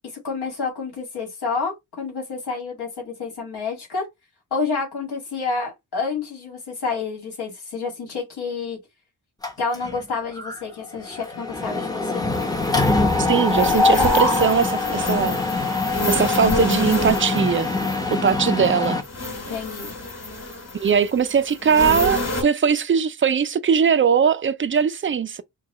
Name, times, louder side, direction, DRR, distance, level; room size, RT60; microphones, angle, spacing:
voice 1, 0.2-4.0 4.5-8.8 9.6-12.3 19.5-19.9, left 4 dB, 80° left, 2.0 m, -29 dB
Mechanisms, 9.4-10.0 10.4-10.6 10.8-19.0, left 3 dB, 10° left, 0.6 m, -23 dB
sound 1, 12.3-22.4, left 1 dB, 45° left, 2.7 m, -29 dB
voice 2, 13.2-15.4 16.1-17.7 18.1-19.0 20.7-25.4, right 7 dB, 35° right, 0.4 m, -20 dB
4.6 x 2.2 x 4.0 m
wide cardioid pair, 170°, 38 cm